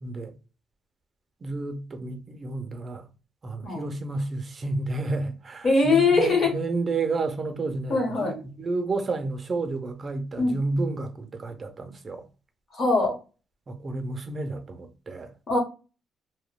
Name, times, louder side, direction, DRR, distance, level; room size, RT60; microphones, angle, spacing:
voice 1, 0.0-0.3 1.4-3.1 3.4-12.3 13.7-15.4, right 3 dB, 40° right, 0.5 m, -31 dB
voice 2, 5.6-6.5 7.9-8.3 10.4-10.6 12.7-13.2 15.5-15.6, left 3 dB, 45° left, 1.2 m, -21 dB
3.0 x 2.1 x 2.2 m
cardioid pair, 90°, 0 cm